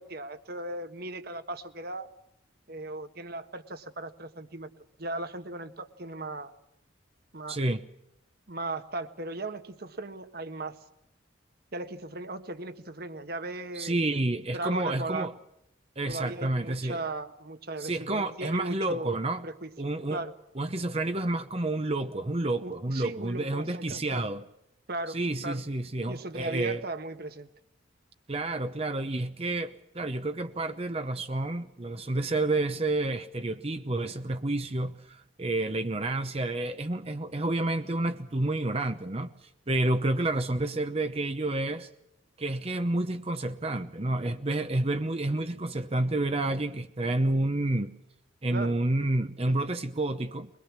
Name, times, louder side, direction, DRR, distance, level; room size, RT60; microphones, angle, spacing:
voice 1, 0.0-2.1 2.7-6.5 7.3-7.6 8.5-10.8 11.7-14.0 14.5-15.3 16.1-19.1 19.4-19.7 20.1-20.3 22.6-24.2 24.9-25.6 26.1-27.5 48.5-48.7 49.5-49.6, right 2 dB, 55° right, 1.5 m, -37 dB
voice 2, 7.5-7.8 13.8-15.3 16.0-17.0 17.8-19.4 19.8-20.2 20.6-24.4 25.1-26.8 28.3-41.9 42.4-47.9 48.4-50.5, right 2 dB, 30° right, 0.8 m, -29 dB
22.5 x 21.5 x 7.3 m
head